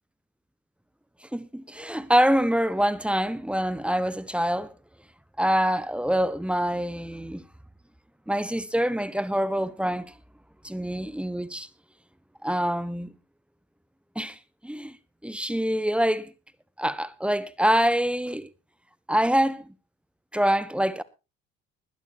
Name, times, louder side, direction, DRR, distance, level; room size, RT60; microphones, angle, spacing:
voice 1, 1.2-4.7 5.4-7.4 8.3-10.1 10.6-11.7 12.4-13.1 14.1-15.0 15.2-16.3 16.8-18.5 19.1-19.7 20.3-21.0, equal, 5° right, 1.3 m, -25 dB
20.5 x 11.5 x 2.9 m
supercardioid pair, 70°, 32 cm